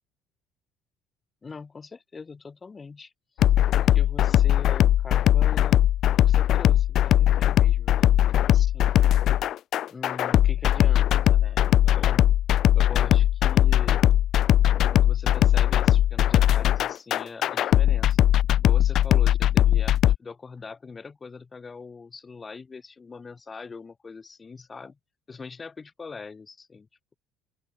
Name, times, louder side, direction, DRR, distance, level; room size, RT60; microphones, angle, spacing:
voice 1, 1.4-3.5 3.7-5.8 6.2-9.4 9.9-12.3 12.7-14.0 14.9-18.2 18.6-25.0 25.3-26.9, left 4 dB, 20° left, 4.8 m, -42 dB
sound 1, 3.4-20.2, left 12 dB, 45° left, 0.4 m, -20 dB
open air
cardioid pair, 165°, 0 cm